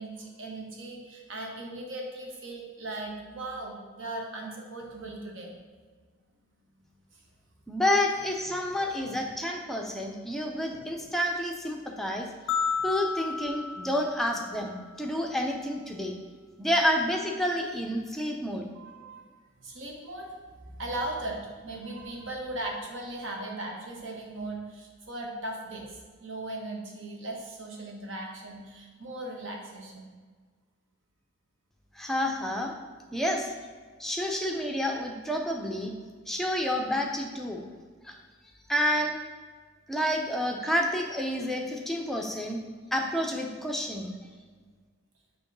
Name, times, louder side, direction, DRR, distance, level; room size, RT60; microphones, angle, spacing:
voice 1, 0.0-5.5 7.1-7.2 8.7-9.1 18.7-19.3 19.6-20.3 20.6-30.1, right 2 dB, 65° right, 0 dB, 1.1 m, -38 dB
voice 2, 7.7-12.3 12.8-16.2 16.6-18.7 32.0-32.7 33.1-33.5 34.0-35.9 36.3-37.6 38.0-38.2 38.7-39.2 39.9-42.6 42.9-44.2, equal, ahead, 1 dB, 0.5 m, -29 dB
sound 1, 12.5-14.8, left 5 dB, 60° left, 0.3 m, -32 dB
6.1 x 3.0 x 5.3 m, 1.5 s
head